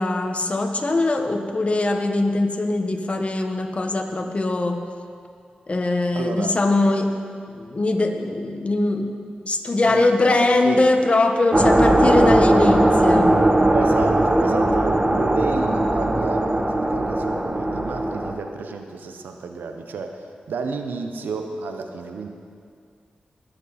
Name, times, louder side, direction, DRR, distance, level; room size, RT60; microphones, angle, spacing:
voice 1, 0.0-4.9 5.7-7.2 7.6-9.2 9.4-13.4, left 2 dB, 40° left, 4 dB, 1.4 m, -21 dB
voice 2, 6.1-6.6 9.7-10.9 13.7-22.3, right 4 dB, 90° right, 5 dB, 0.9 m, -31 dB
sound 1, 11.5-18.3, right 1 dB, 25° right, 1.3 m, -19 dB
20.5 x 8.1 x 4.3 m, 2.3 s
cardioid pair, 45°, 3 cm